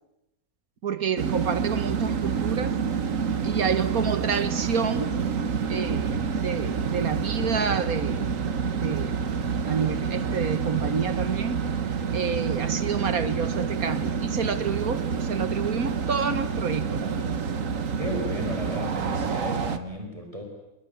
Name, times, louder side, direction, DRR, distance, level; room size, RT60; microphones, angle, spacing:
voice 1, 0.8-2.8 3.4-5.1 5.7-8.5 8.8-9.2 9.7-11.6 12.1-17.3, right 6 dB, 85° right, 2.0 m, -29 dB
sound 1, 1.2-19.8, right 6 dB, 65° right, 1.7 m, -28 dB
voice 2, 18.0-20.4, equal, 25° right, 4.8 m, -34 dB
27.5 x 20.5 x 9.4 m
omnidirectional pair, 1.5 m